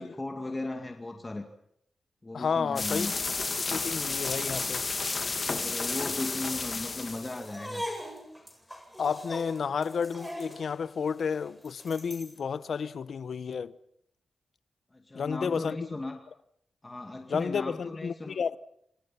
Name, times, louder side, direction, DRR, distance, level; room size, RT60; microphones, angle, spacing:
voice 1, 0.0-1.5 2.2-3.1 5.4-7.8 14.9-16.2 16.8-18.4, left 2 dB, 20° left, 2.2 m, -37 dB
voice 2, 2.3-3.1 3.6-4.8 9.0-13.8 15.1-15.8 17.3-18.6, left 6 dB, 70° left, 1.1 m, -31 dB
sound 1, 2.8-7.5, left 4 dB, 40° left, 2.0 m, -32 dB
sound 2, 7.4-12.4, equal, 5° right, 8.0 m, -41 dB
29.0 x 26.5 x 5.8 m
wide cardioid pair, 95°, 0 cm